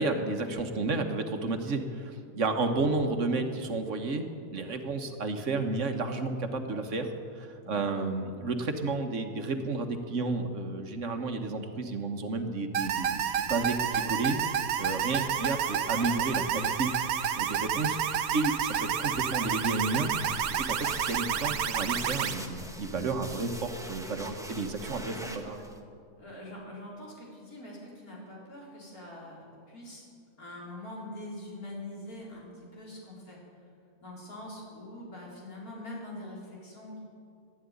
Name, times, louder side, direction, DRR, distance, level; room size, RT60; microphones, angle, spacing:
voice 1, 0.0-4.2 4.5-14.4 14.8-16.9 17.3-18.0 18.3-20.1 20.5-25.6, right 3 dB, 60° right, 6 dB, 1.5 m, -31 dB
voice 2, 7.6-8.0 25.1-25.5 26.2-30.1 30.4-33.4 34.0-37.0, left 1 dB, 85° left, -5 dB, 4.6 m, -44 dB
sound 1, 12.7-22.3, right 8 dB, 80° right, 1.2 m, -30 dB
sound 2, 19.9-25.8, right 1 dB, 5° right, 0.8 m, -44 dB
12.5 x 11.5 x 9.8 m, 2.4 s
omnidirectional pair, 1.5 m